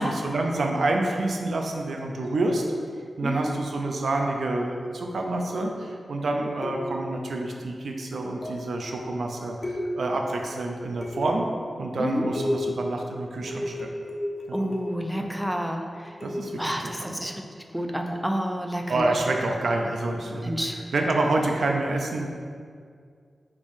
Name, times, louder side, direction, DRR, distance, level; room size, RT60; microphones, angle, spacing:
voice 1, 0.0-2.6 3.2-11.5 11.8-13.9 14.5-14.7 15.2-15.3 16.2-17.3 18.9-22.3, right 2 dB, 80° right, 2 dB, 0.4 m, -28 dB
sound 1, 6.6-7.2 8.4-8.8 9.6-10.2 11.0-11.5 12.3-12.8 13.5-15.1 16.2-16.6 18.1-18.3, left 1 dB, 35° left, 0.6 m, -32 dB
voice 2, 14.5-15.9 16.6-17.3 17.7-19.1 20.4-20.8, equal, 5° right, 3 dB, 0.4 m, -29 dB
5.0 x 3.6 x 2.6 m, 2.1 s
cardioid pair, 70°, 0 cm